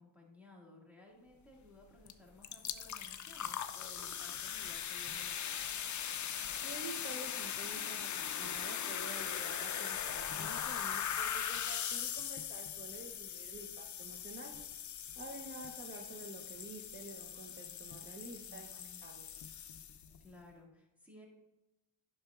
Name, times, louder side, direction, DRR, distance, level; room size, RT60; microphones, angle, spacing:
voice 1, 0.0-5.7 18.5-19.1 20.2-21.3, left 2 dB, 5° right, -3 dB, 1.9 m, -58 dB
sound 1, 2.1-2.2 2.4-20.2, left 9 dB, 40° left, 0.4 m, -40 dB
voice 2, 6.6-14.5 15.2-19.3, right 2 dB, 25° right, 1 dB, 0.8 m, -49 dB
9.7 x 5.6 x 2.4 m, 0.94 s
cardioid pair, 90°, 48 cm